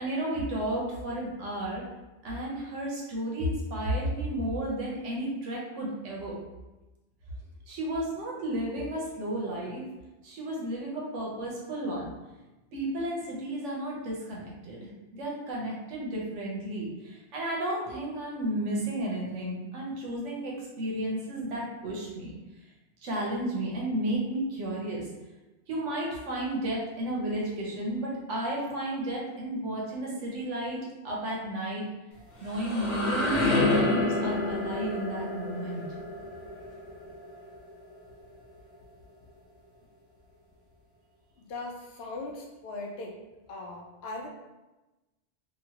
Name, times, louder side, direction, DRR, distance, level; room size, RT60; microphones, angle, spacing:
voice 1, 0.0-1.8 2.2-6.4 7.7-9.9 10.2-12.1 12.7-22.3 23.0-25.1 25.7-31.9 32.4-35.9, right 1 dB, 90° right, -3 dB, 1.2 m, -33 dB
sound 1, 32.2-37.9, left 2 dB, 90° left, 1.1 m, -29 dB
voice 2, 41.4-43.2 43.5-44.3, left 2 dB, 65° left, 0 dB, 0.8 m, -39 dB
3.0 x 2.6 x 2.8 m, 1.1 s
omnidirectional pair, 1.2 m